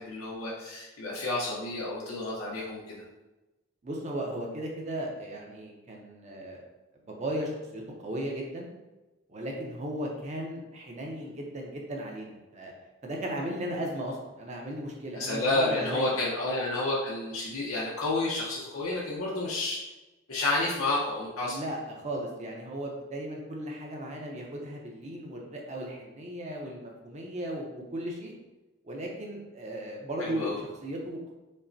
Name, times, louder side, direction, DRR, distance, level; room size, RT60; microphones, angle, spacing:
voice 1, 0.0-3.0 15.1-19.8 20.3-21.6 30.2-30.6, left 2 dB, 85° left, -6 dB, 0.7 m, -30 dB
voice 2, 3.8-6.7 7.0-8.7 9.3-12.7 13.0-16.2 21.4-28.3 28.8-31.3, right 1 dB, 35° right, 0 dB, 0.6 m, -36 dB
5.3 x 2.1 x 2.6 m, 1.1 s
head